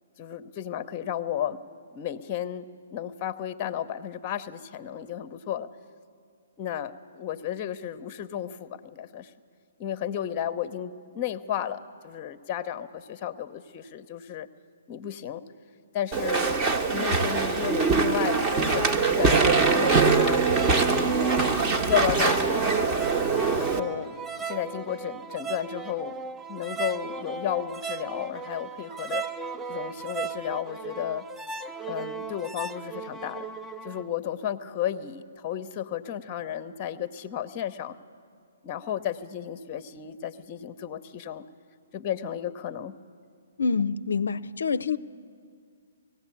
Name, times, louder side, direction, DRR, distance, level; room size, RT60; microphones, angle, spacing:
voice 1, 0.2-1.6 1.9-5.7 6.6-9.3 9.8-14.5 14.9-15.4 15.9-16.6 16.9-20.4 20.9-21.2 21.9-22.8 23.6-24.1 24.4-26.1 26.5-29.2 29.7-31.3 31.8-33.5 33.8-38.0 38.6-41.4 41.9-43.0, left 10 dB, 30° left, 12 dB, 0.8 m, -33 dB
Walk footsteps / Chatter / Squeak, 16.1-23.8, right 4 dB, 25° right, 1.2 m, -23 dB
sound 1, 18.7-34.1, right 5 dB, 5° right, 0.5 m, -36 dB
voice 2, 43.6-45.0, left 5 dB, 70° left, 14 dB, 0.5 m, -26 dB
19.0 x 16.0 x 8.5 m, 2.2 s
figure-of-eight pair, 130°, 0 cm